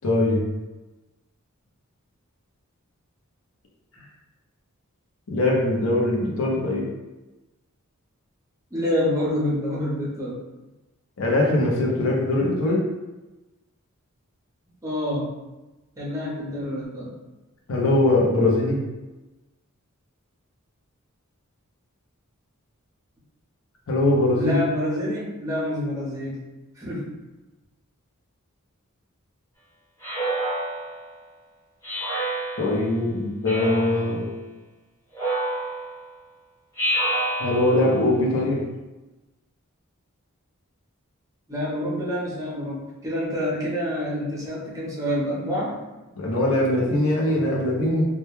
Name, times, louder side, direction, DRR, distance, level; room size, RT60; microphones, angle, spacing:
voice 1, 0.0-0.4 5.3-6.9 11.2-12.8 17.7-18.8 23.9-24.6 32.6-34.3 37.4-38.6 46.2-48.1, left 1 dB, 65° left, -3 dB, 0.6 m, -21 dB
voice 2, 8.7-10.4 14.8-15.3 16.0-17.1 24.3-26.4 26.8-27.1 41.5-45.8, left 1 dB, 15° right, -7 dB, 0.6 m, -27 dB
Speech synthesizer, 30.0-31.1 31.8-32.9 33.5-34.1 35.1-36.1 36.8-37.9, right 1 dB, 15° left, 1.0 m, -28 dB
2.2 x 2.1 x 3.0 m, 1.1 s
head